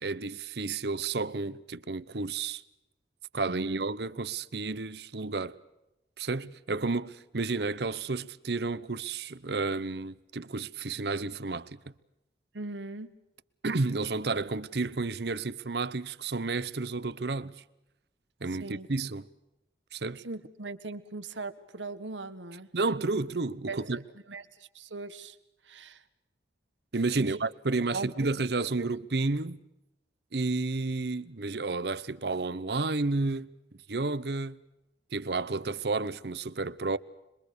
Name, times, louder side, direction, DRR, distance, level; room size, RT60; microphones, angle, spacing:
voice 1, 0.0-2.6 3.3-5.6 6.2-11.8 13.6-17.6 18.4-19.3 19.9-20.2 22.7-24.0 26.9-29.6 30.3-33.5 33.9-34.6 35.1-37.0, right 3 dB, 65° right, 0.9 m, -31 dB
voice 2, 3.4-3.8 12.5-13.1 18.6-18.9 20.2-22.7 23.7-24.0 24.3-25.4 25.7-26.0 27.2-27.4 27.9-28.1 28.8-28.9, right 3 dB, 85° right, 1.6 m, -39 dB
26.5 x 23.0 x 6.8 m
head